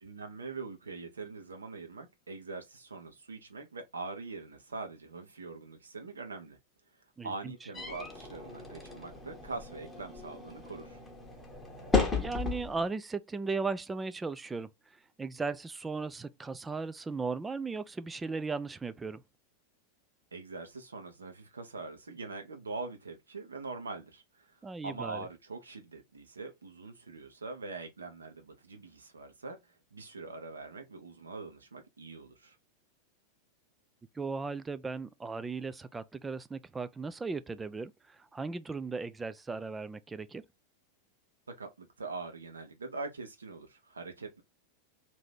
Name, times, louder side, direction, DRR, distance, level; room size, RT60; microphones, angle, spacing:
voice 1, 0.0-6.6 7.2-11.0 20.3-24.5 24.8-32.6 41.5-44.4, right 3 dB, 75° right, 0.8 m, -43 dB
voice 2, 7.2-7.5 12.2-14.7 15.2-19.2 24.6-25.2 34.2-40.4, right 4 dB, 10° right, 0.3 m, -37 dB
sound 1, 7.7-12.9, left 4 dB, 10° left, 0.9 m, -35 dB
2.8 x 2.7 x 3.5 m
figure-of-eight pair, 90°, 0 cm